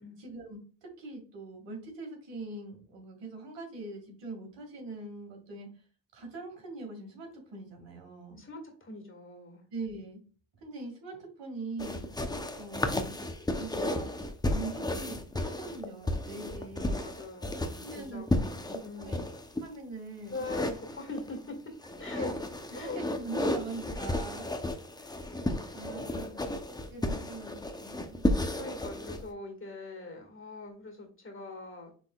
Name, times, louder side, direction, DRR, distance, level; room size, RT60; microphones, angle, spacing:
voice 1, 0.2-5.7 6.1-8.4 9.7-10.2 10.6-12.1 12.6-13.2 13.5-14.1 14.5-17.0 17.8-18.3 18.7-19.2 19.6-20.4 22.1-22.3 22.8-22.9 23.1-24.5 25.7-26.3 26.9-28.2, right 3 dB, 65° right, 2 dB, 2.1 m, -42 dB
voice 2, 8.4-9.6 16.6-19.2 20.3-21.7 22.0-22.3 22.7-23.0 25.0-25.2 25.9-26.6 28.5-31.9, left 2 dB, 25° left, 3 dB, 1.9 m, -42 dB
sound 1, 11.8-19.6 20.3-21.4 21.8-29.2, left 1 dB, 10° left, 0.7 m, -33 dB
6.1 x 3.6 x 2.3 m, 0.40 s
supercardioid pair, 70°, 46 cm